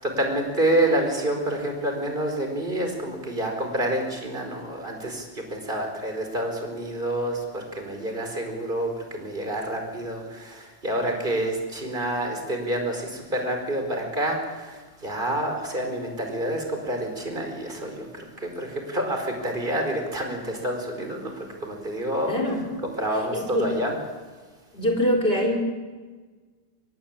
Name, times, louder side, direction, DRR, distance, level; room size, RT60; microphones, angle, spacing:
voice 1, 0.0-22.4 22.8-23.9, right 1 dB, 15° right, 3 dB, 4.6 m, -28 dB
voice 2, 22.3-22.7 23.3-23.7 24.7-25.6, equal, 20° left, 3 dB, 4.0 m, -23 dB
24.5 x 22.0 x 8.8 m, 1.4 s
omnidirectional pair, 3.4 m